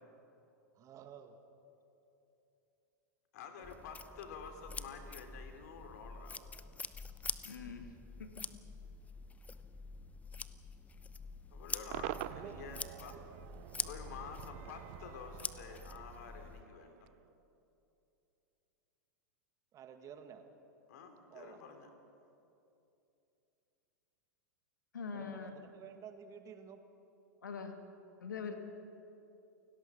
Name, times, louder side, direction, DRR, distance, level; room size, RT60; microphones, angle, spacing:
voice 1, 0.7-1.4 12.3-12.6 19.7-20.4 21.3-21.6 25.1-26.8, right 8 dB, 35° right, 7 dB, 2.0 m, -51 dB
voice 2, 3.3-6.4 11.5-13.2 13.8-17.1 20.9-21.9, left 5 dB, 60° left, 6 dB, 3.2 m, -49 dB
sound 1, 3.6-16.6, left 4 dB, 15° left, 0.8 m, -46 dB
voice 3, 7.4-7.9 8.2-8.5 24.9-25.5 27.4-27.8 28.2-28.6, left 5 dB, 75° left, 6 dB, 2.0 m, -43 dB
Cheering / Crowd / Fireworks, 11.9-17.2, right 16 dB, 50° right, 0.6 m, -47 dB
29.0 x 17.5 x 6.4 m, 2.8 s
figure-of-eight pair, 95°, 10 cm